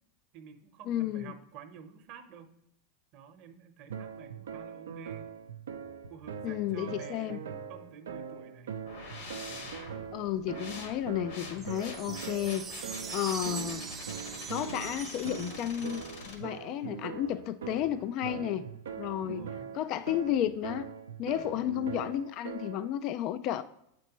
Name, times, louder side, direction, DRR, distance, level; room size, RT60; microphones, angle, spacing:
voice 1, 0.3-2.5 3.1-5.2 6.1-8.7 9.5-9.9 11.3-11.7 18.3-18.7 19.2-19.7 21.3-21.6, right 7 dB, 55° right, 7 dB, 0.9 m, -50 dB
voice 2, 0.9-1.3 6.4-7.4 10.1-13.8 14.5-18.6 19.0-19.5 19.7-20.9 21.2-23.6, left 11 dB, 50° left, 13 dB, 0.3 m, -32 dB
sound 1, 3.9-23.0, right 7 dB, 85° right, 0.5 m, -42 dB
sound 2, 8.9-16.4, left 3 dB, 70° left, 1.6 m, -46 dB
sound 3, 11.6-16.3, right 6 dB, 30° right, 0.5 m, -42 dB
8.1 x 4.4 x 3.0 m, 0.79 s
hypercardioid pair, 100°, 0 cm